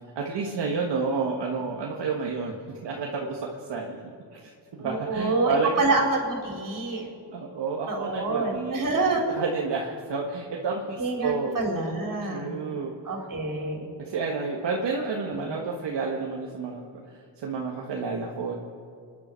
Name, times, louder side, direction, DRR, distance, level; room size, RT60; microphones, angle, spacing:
voice 1, 0.1-4.0 4.3-5.8 7.3-8.9 9.3-11.5 12.3-12.9 14.0-18.6, right 4 dB, 65° right, -1 dB, 1.6 m, -30 dB
voice 2, 4.8-7.1 7.9-9.2 11.0-12.5 13.1-13.9 15.3-15.5, right 3 dB, 45° right, 0 dB, 3.9 m, -27 dB
28.0 x 10.5 x 4.5 m, 2.3 s
cardioid pair, 105°, 44 cm